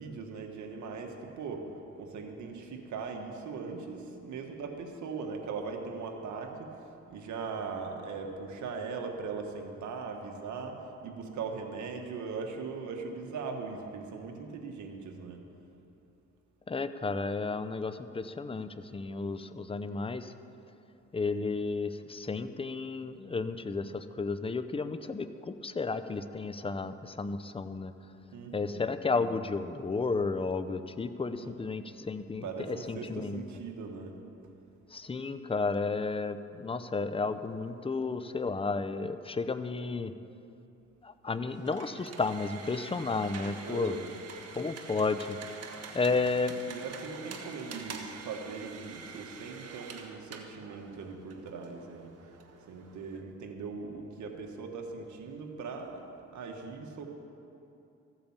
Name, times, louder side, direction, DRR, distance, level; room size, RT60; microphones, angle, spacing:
voice 1, 0.0-1.7 2.0-6.8 7.1-15.4 28.3-28.9 31.4-31.6 32.4-34.2 43.6-44.2 46.6-52.1 52.7-56.0 56.3-57.1, right 4 dB, 70° right, 3 dB, 1.7 m, -40 dB
voice 2, 16.7-20.3 21.1-27.9 28.5-33.4 34.9-40.1 41.0-43.9 44.6-45.4 45.9-46.6, left 4 dB, 20° left, 11 dB, 0.6 m, -32 dB
sound 1, 41.4-53.2, right 5 dB, 55° right, 1.4 m, -46 dB
14.5 x 8.8 x 7.4 m, 2.8 s
cardioid pair, 90°, 30 cm